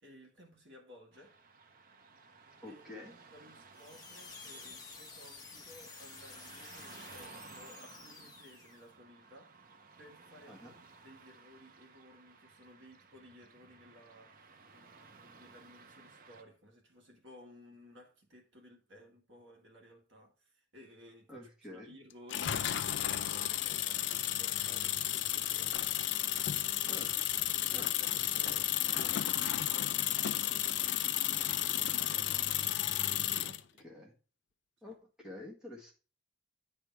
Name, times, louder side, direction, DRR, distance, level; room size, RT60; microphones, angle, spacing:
voice 1, 0.0-1.4 2.6-9.7 10.0-25.8 26.8-27.1 27.4-32.7 33.1-33.8 34.8-34.9, equal, 65° right, 2.0 m, -57 dB
Car passing by / Traffic noise roadway noise, 1.1-16.4, right 4 dB, 45° right, 0.7 m, -57 dB
voice 2, 2.6-3.1 10.5-10.7 21.3-21.9 26.8-27.1 27.7-27.9 33.4-34.2 34.8-35.9, left 1 dB, 5° right, 1.5 m, -49 dB
sound 1, 3.7-8.9, left 4 dB, 20° left, 1.2 m, -51 dB
sound 2, 22.3-33.6, left 12 dB, 60° left, 0.4 m, -33 dB
10.0 x 3.6 x 4.6 m
head